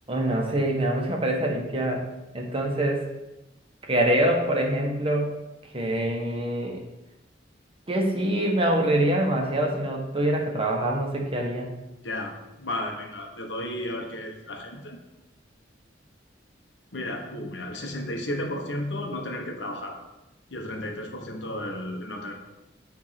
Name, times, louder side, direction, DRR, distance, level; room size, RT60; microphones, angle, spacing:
voice 1, 0.1-2.0 2.3-3.1 3.9-5.3 5.7-6.8 7.9-11.7, right 1 dB, 30° right, 1 dB, 1.2 m, -25 dB
voice 2, 12.0-15.0 16.9-20.0 20.5-22.4, left 1 dB, 80° left, 2 dB, 1.4 m, -33 dB
9.3 x 3.7 x 5.8 m, 0.98 s
head